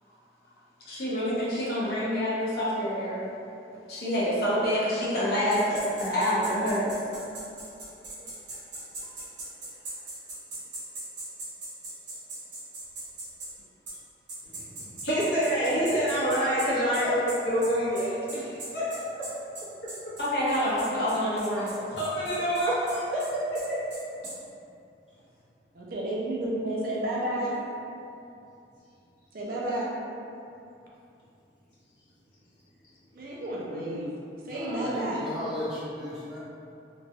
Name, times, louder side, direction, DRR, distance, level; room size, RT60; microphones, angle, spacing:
voice 1, 0.9-3.2 3.9-6.9 20.2-21.9, equal, 55° left, -9 dB, 0.8 m, -27 dB
sound 1, 5.5-13.5 13.9-14.0 14.3-24.4, right 2 dB, 75° right, 1.0 m, -40 dB
voice 2, 14.4-18.8 21.9-23.2 23.7-23.8, equal, 80° left, -10 dB, 1.0 m, -27 dB
voice 3, 25.8-27.6 29.3-29.9 33.1-34.1 34.4-35.2, right 1 dB, 50° right, -5 dB, 0.5 m, -31 dB
voice 4, 34.5-36.4, left 1 dB, 5° right, -10 dB, 0.5 m, -35 dB
2.9 x 2.2 x 2.7 m, 2.6 s
head